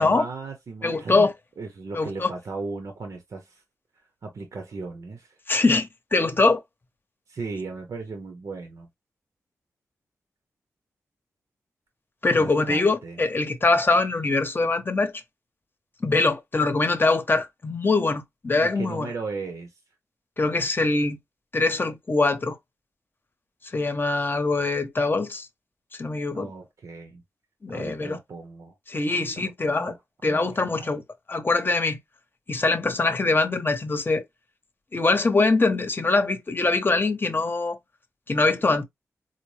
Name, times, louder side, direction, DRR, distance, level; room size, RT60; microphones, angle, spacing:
voice 1, 0.0-1.3 1.6-3.6 3.9-5.4 7.3-8.9 12.3-13.2 18.6-19.8 26.3-27.2 27.7-28.7 29.1-30.0 30.2-31.0, right 4 dB, 65° right, 0.7 m, -37 dB
voice 2, 0.8-1.3 1.9-2.3 5.5-6.6 12.2-15.1 16.0-19.1 20.4-21.2 21.5-22.6 23.7-25.5 26.0-26.5 27.6-28.2 28.9-29.9 30.2-31.0 31.3-32.0 32.5-34.2 34.9-37.8 38.3-38.8, left 3 dB, 35° left, 0.8 m, -23 dB
4.0 x 2.0 x 3.1 m
cardioid pair, 60°, 6 cm